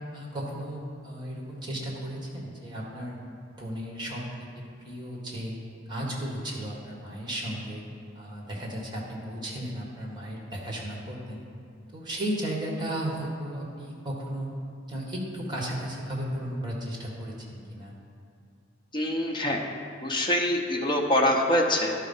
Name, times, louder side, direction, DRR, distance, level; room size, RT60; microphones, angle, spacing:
voice 1, 0.1-3.2 3.5-4.2 4.8-5.5 5.9-7.8 8.1-11.4 11.9-14.5 14.9-17.9, right 1 dB, 25° right, -2 dB, 1.5 m, -34 dB
voice 2, 18.9-19.6 20.0-21.9, left 1 dB, 25° left, 0 dB, 0.8 m, -24 dB
11.5 x 4.3 x 5.5 m, 2.3 s
head